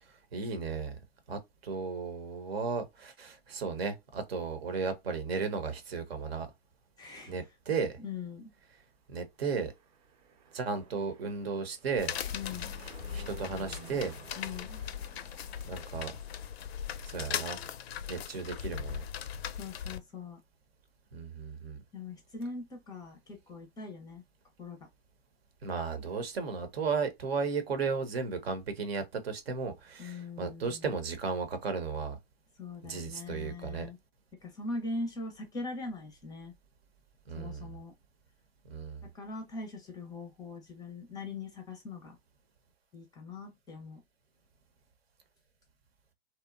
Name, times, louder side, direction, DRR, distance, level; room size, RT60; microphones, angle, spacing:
voice 1, 0.1-1.0 1.3-6.5 7.3-8.0 9.1-9.7 10.5-12.1 13.1-14.1 15.6-16.1 17.0-17.6 18.1-19.1 21.1-21.8 25.6-32.2 32.8-33.9 37.3-37.8 38.7-39.0, right 5 dB, 75° right, 0.9 m, -35 dB
voice 2, 7.0-7.3 8.0-8.5 12.3-12.7 14.4-14.8 19.6-20.4 21.9-24.2 24.6-24.8 30.0-30.9 32.6-34.0 34.4-36.5 37.4-37.9 39.1-42.2 42.9-44.0, left 3 dB, 15° left, 0.5 m, -41 dB
Fixed-wing aircraft airplane, 9.6-16.9, right 5 dB, 40° right, 0.7 m, -54 dB
sound 1, 12.0-20.0, left 9 dB, 80° left, 0.5 m, -39 dB
2.8 x 2.1 x 2.3 m
hypercardioid pair, 120°, 31 cm